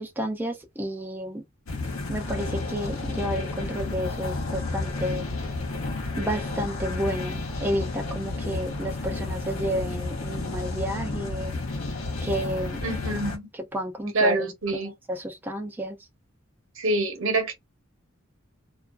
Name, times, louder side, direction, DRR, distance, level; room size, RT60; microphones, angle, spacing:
voice 1, 0.0-1.4 2.1-5.3 6.2-11.6 12.2-12.8 13.5-16.0, equal, 10° right, 0.3 m, -31 dB
sound 1, 1.7-13.4, left 2 dB, 75° left, 0.8 m, -31 dB
voice 2, 12.8-13.5 14.1-14.9 16.8-17.5, right 2 dB, 75° right, 1.0 m, -25 dB
2.4 x 2.3 x 2.3 m
head